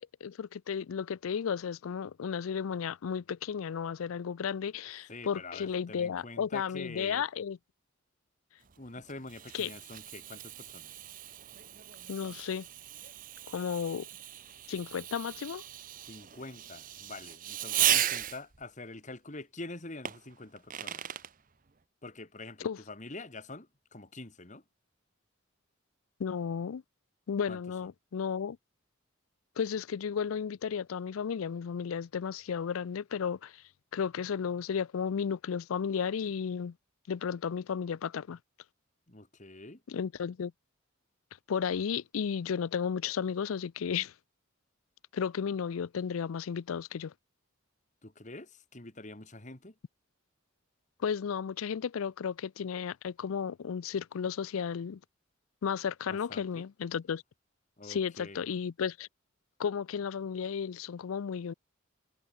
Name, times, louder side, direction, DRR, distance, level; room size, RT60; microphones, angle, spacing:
voice 1, 0.0-7.6 9.5-9.7 12.1-12.7 13.5-14.1 14.7-15.6 22.6-22.8 26.2-26.8 27.3-28.6 29.6-33.6 33.9-36.7 37.1-38.4 39.9-40.5 41.5-44.1 45.1-47.1 51.0-55.0 55.6-57.2 57.8-59.1 59.6-61.5, left 7 dB, 85° left, 0.4 m, -33 dB
voice 2, 5.1-7.3 8.8-11.0 16.1-21.0 22.0-24.6 27.5-27.6 39.1-39.8 48.0-49.7 56.1-56.6 57.8-58.4, left 2 dB, 35° left, 2.2 m, -46 dB
Fireworks, 8.7-18.6 20.0-21.3, right 12 dB, 40° right, 0.8 m, -36 dB
head